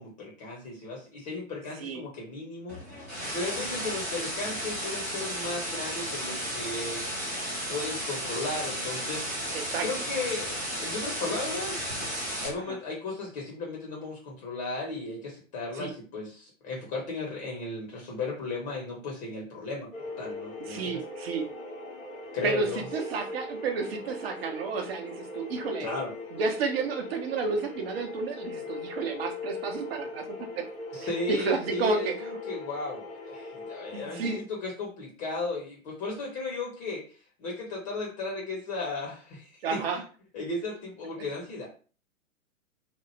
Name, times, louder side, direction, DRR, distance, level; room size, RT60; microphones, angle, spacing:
voice 1, 0.0-7.1 7.7-11.9 12.4-19.9 20.2-21.0 22.3-22.8 25.8-26.1 30.9-37.0 37.4-39.8 40.3-41.7, left 3 dB, 30° left, -2 dB, 0.8 m, -35 dB
sound 1, 2.7-12.5, right 1 dB, 10° right, 0.3 m, -34 dB
sound 2, 19.9-34.4, left 2 dB, 75° left, 1.1 m, -40 dB
voice 2, 20.6-21.5 22.4-25.9 26.3-30.6 31.3-32.1 33.9-34.4 39.6-40.0, right 4 dB, 45° right, 4 dB, 0.7 m, -31 dB
3.0 x 2.0 x 3.2 m, 0.38 s
figure-of-eight pair, 110°, 40 cm